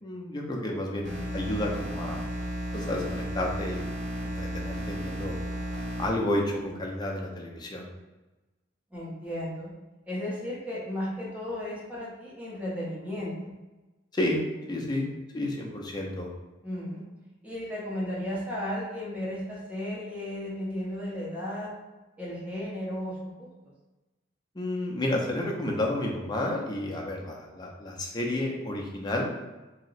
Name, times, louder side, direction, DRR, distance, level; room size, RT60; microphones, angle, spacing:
voice 1, 0.0-2.2 2.7-3.9 4.2-5.4 6.0-7.9 14.1-16.3 24.5-29.3, left 1 dB, 20° left, -1 dB, 0.5 m, -31 dB
sound 1, 1.0-6.1, equal, 85° right, 1.4 m, -33 dB
voice 2, 8.9-9.7 10.0-13.5 16.6-17.0 17.4-21.7 22.2-23.5, left 1 dB, 5° right, -7 dB, 0.8 m, -34 dB
2.8 x 2.1 x 4.0 m, 1.1 s
head